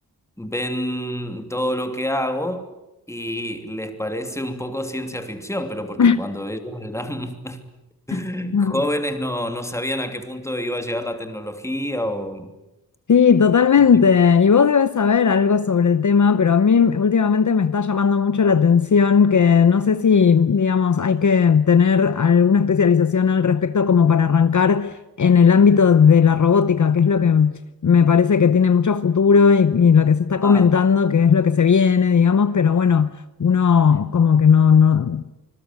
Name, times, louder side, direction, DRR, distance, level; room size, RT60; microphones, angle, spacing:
voice 1, 0.4-2.8 3.1-7.6 8.1-12.5 30.4-30.7, equal, 10° left, 2.8 m, -28 dB
voice 2, 13.1-33.1 33.4-35.2, left 6 dB, 55° left, 0.9 m, -16 dB
26.0 x 21.0 x 9.5 m
wide cardioid pair, 130°, 36 cm